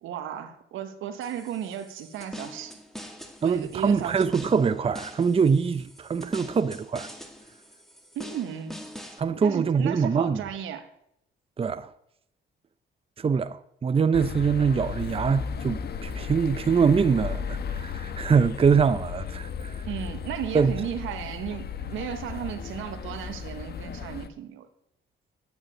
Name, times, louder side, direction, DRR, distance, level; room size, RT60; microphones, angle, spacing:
voice 1, 0.0-2.8 3.4-4.2 8.1-8.8 9.4-10.9 19.9-24.7, right 9 dB, 85° right, 1.5 m, -35 dB
sound 1, 1.2-9.2, equal, ahead, 2.2 m, -44 dB
voice 2, 3.4-7.1 9.2-10.4 11.6-11.9 13.2-19.8 20.5-20.7, right 6 dB, 30° right, 0.6 m, -24 dB
sound 2, 14.1-24.3, left 7 dB, 55° left, 1.2 m, -35 dB
9.3 x 9.0 x 8.8 m
cardioid pair, 90°, 20 cm